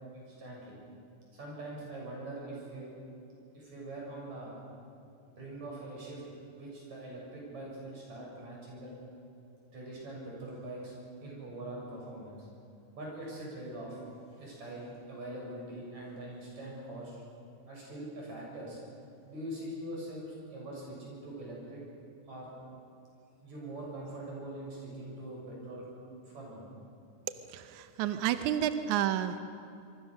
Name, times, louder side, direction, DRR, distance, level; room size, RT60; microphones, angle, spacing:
voice 1, 0.1-0.8 1.3-2.9 3.5-4.6 5.3-6.2 6.5-8.9 9.7-10.9 11.2-12.5 13.0-14.0 14.3-17.2 17.7-18.8 19.3-21.8 22.3-22.5 23.4-25.9 26.2-26.7, right 1 dB, 45° right, -3 dB, 8.3 m, -43 dB
voice 2, 27.5-29.4, right 11 dB, 75° right, 9 dB, 1.8 m, -30 dB
26.0 x 24.0 x 6.6 m, 2.6 s
omnidirectional pair, 4.5 m